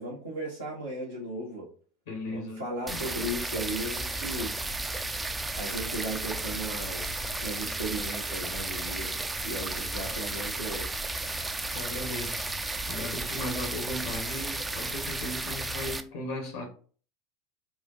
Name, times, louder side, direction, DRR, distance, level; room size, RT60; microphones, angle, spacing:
voice 1, 0.0-1.7 2.3-4.8 5.6-10.9, right 1 dB, 90° right, -7 dB, 0.9 m, -36 dB
voice 2, 2.1-3.0 11.7-12.6 12.9-16.7, left 1 dB, 70° left, 3 dB, 0.9 m, -37 dB
sound 1, 2.9-16.0, right 2 dB, 15° right, 0.4 m, -33 dB
4.1 x 2.4 x 2.7 m, 0.42 s
figure-of-eight pair, 75°, 0 cm